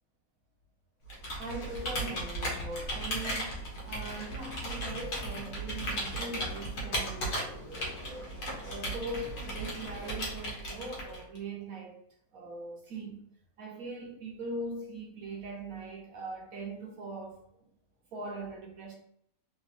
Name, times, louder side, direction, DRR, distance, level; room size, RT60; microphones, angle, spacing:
Computer keyboard, 1.1-11.4, equal, 65° left, 1.4 m, -36 dB
voice 1, 1.4-3.6 3.8-12.0 12.3-13.3 13.6-17.4 18.1-18.9, right 2 dB, 65° right, 0.9 m, -41 dB
3.4 x 2.9 x 2.4 m
omnidirectional pair, 2.0 m